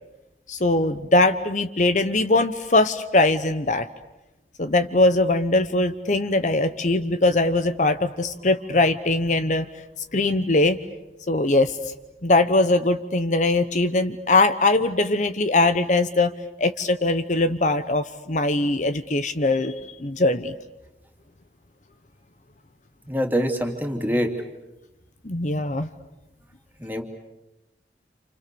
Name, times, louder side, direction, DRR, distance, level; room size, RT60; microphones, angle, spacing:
voice 1, 0.5-3.9 4.6-9.6 10.1-10.8 11.3-11.9 12.2-16.3 16.6-20.5 25.2-25.9, left 2 dB, 45° left, 10 dB, 1.0 m, -21 dB
voice 2, 23.1-24.3 26.8-27.0, equal, 10° right, 4 dB, 2.9 m, -24 dB
29.5 x 28.5 x 7.0 m, 0.99 s
head